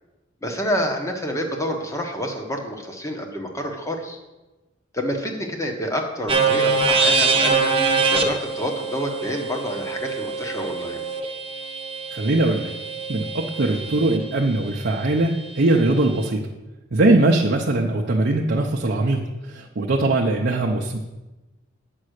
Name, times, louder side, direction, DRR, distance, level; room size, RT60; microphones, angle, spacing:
voice 1, 0.4-4.2 4.9-7.7 8.1-11.0, equal, 15° left, 3 dB, 1.2 m, -28 dB
sound 1, 6.3-14.2, right 4 dB, 25° right, 1.0 m, -24 dB
voice 2, 12.1-12.7 13.1-16.4 16.9-19.2 19.5-21.0, right 2 dB, 55° right, 0 dB, 0.7 m, -21 dB
8.4 x 5.5 x 6.5 m, 1.1 s
head